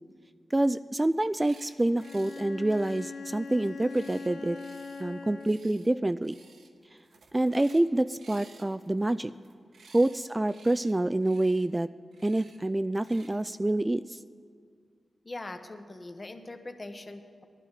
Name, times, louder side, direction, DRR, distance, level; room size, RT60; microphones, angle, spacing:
voice 1, 0.5-4.6 5.0-6.4 7.3-9.3 9.9-11.9 12.2-14.2, right 1 dB, 20° right, 13 dB, 0.3 m, -27 dB
sound 1, 1.2-1.7 2.0-2.4 2.7-5.0 5.4-5.9 6.2-6.7 7.0-7.9 8.2-10.2 10.5-10.9 11.2-11.7 12.1-12.6 13.0-13.3, right 4 dB, 80° right, 1.2 m, -56 dB
Bowed string instrument, 2.0-5.8, left 4 dB, 80° left, 0.9 m, -41 dB
voice 2, 15.2-17.4, left 2 dB, 35° left, 7 dB, 1.3 m, -41 dB
18.0 x 11.0 x 4.1 m, 2.1 s
cardioid pair, 50°, 0 cm